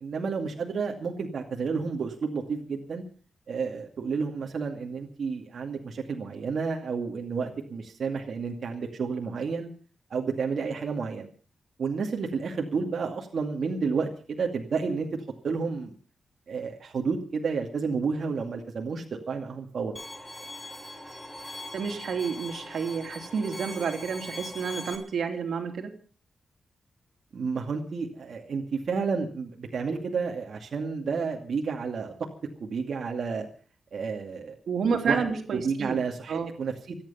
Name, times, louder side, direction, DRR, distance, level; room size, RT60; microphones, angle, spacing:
voice 1, 0.0-3.0 3.5-9.7 10.1-11.3 11.8-15.1 15.4-15.9 16.5-20.0 27.3-32.1 32.6-33.5 33.9-34.6 35.0-35.2 35.5-37.0, right 5 dB, 60° right, 1 dB, 2.4 m, -31 dB
Bowed string instrument, 20.0-25.0, left 1 dB, 10° left, 4.4 m, -41 dB
voice 2, 21.7-25.9 34.7-36.0 36.3-36.5, right 6 dB, 80° right, 5 dB, 3.0 m, -30 dB
26.5 x 9.4 x 5.6 m, 0.41 s
wide cardioid pair, 135°, 0 cm